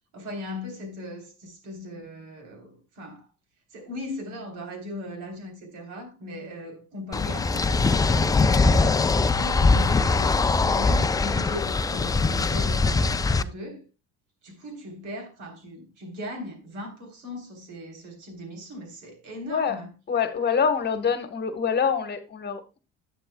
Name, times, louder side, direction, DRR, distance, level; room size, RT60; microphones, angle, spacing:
voice 1, 0.1-3.3 3.7-10.4 10.7-13.8 14.4-19.9, left 1 dB, 80° right, 3.5 m, -38 dB
sound 1, 7.1-13.4, left 3 dB, 15° left, 0.3 m, -22 dB
voice 2, 20.1-22.8, left 6 dB, 35° left, 1.2 m, -25 dB
11.0 x 8.9 x 2.2 m
cardioid pair, 115°, 30 cm